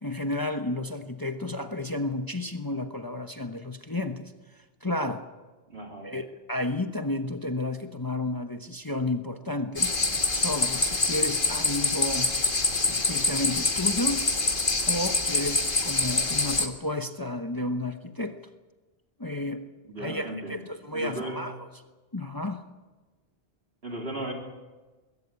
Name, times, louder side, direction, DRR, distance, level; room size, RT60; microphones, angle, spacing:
voice 1, 0.0-4.3 4.8-5.2 6.0-9.9 10.3-12.3 12.9-14.3 14.9-18.4 19.2-19.7 20.0-21.7 22.1-22.6, left 2 dB, 20° left, 6 dB, 1.0 m, -32 dB
voice 2, 5.7-6.1 19.8-20.6 20.9-21.5 23.8-24.3, right 1 dB, 65° right, 0 dB, 4.0 m, -36 dB
sound 1, 9.8-16.7, left 3 dB, 55° left, 1.9 m, -25 dB
21.5 x 17.0 x 8.4 m, 1.2 s
omnidirectional pair, 1.1 m